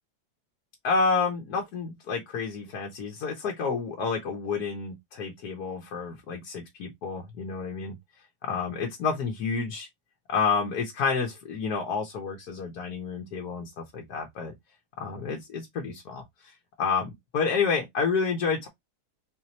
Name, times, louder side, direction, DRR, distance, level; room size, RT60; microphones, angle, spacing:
voice 1, 0.8-7.9 8.4-9.9 10.3-14.5 15.0-18.7, left 5 dB, 75° left, 1.5 m, -29 dB
4.1 x 3.1 x 2.8 m
omnidirectional pair, 1.7 m